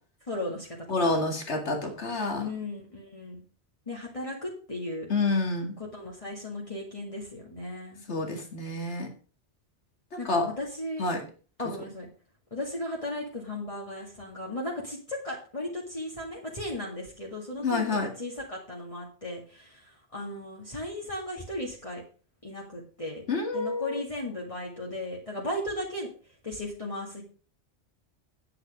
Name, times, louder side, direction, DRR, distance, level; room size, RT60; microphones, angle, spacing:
voice 1, 0.3-0.8 1.0-1.2 2.4-3.4 3.9-5.1 5.8-8.0 10.2-11.0 11.6-12.1 12.5-22.0 22.4-23.2 23.5-26.1 26.4-27.2, left 1 dB, 30° left, -3 dB, 2.2 m, -36 dB
voice 2, 0.9-2.5 5.1-5.8 8.1-9.1 10.1-10.5 11.0-11.2 17.6-18.1 23.3-24.0, left 3 dB, 80° left, 4 dB, 2.4 m, -28 dB
9.5 x 8.8 x 5.0 m, 0.38 s
omnidirectional pair, 1.1 m